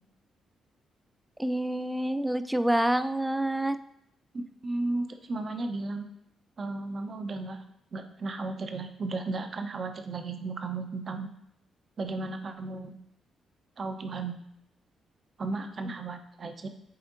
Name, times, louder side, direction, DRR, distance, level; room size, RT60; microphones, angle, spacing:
voice 1, 1.4-3.8, right 1 dB, 5° right, 11 dB, 0.4 m, -27 dB
voice 2, 4.6-6.0 6.6-7.6 7.9-11.3 12.0-13.0 13.8-14.4 15.4-16.7, right 3 dB, 45° right, 6 dB, 0.7 m, -34 dB
8.5 x 4.2 x 2.6 m, 0.76 s
hypercardioid pair, 40°, 0 cm